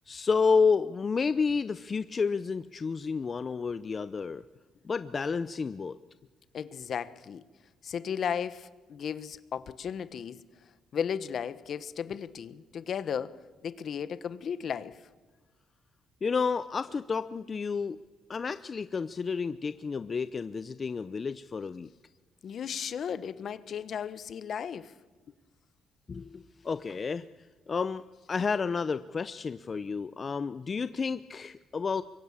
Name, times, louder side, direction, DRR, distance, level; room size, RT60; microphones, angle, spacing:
voice 1, 0.1-4.4 4.8-6.0 16.2-18.0 18.3-21.9 26.1-27.3 27.7-32.0, left 5 dB, 40° left, 0.6 m, -30 dB
voice 2, 6.5-7.4 7.8-10.4 10.9-15.0 22.4-24.9, left 7 dB, 60° left, 1.2 m, -35 dB
25.0 x 23.5 x 7.4 m
cardioid pair, 90°, 0 cm